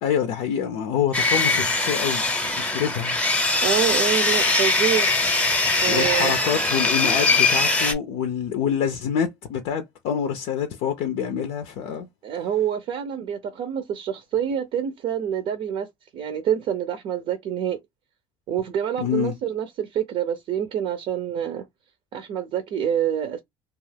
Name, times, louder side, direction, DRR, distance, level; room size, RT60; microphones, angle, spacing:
voice 1, 0.0-3.2 5.9-12.1 19.0-19.3, left 8 dB, 80° left, 0.5 m, -26 dB
Sawing, 1.1-7.9, left 3 dB, 10° left, 0.7 m, -21 dB
voice 2, 3.6-5.1 5.8-6.3 12.2-15.9 16.1-17.8 18.5-21.6 22.1-23.4, right 9 dB, 60° right, 0.6 m, -26 dB
2.4 x 2.4 x 3.3 m
supercardioid pair, 100°, 11 cm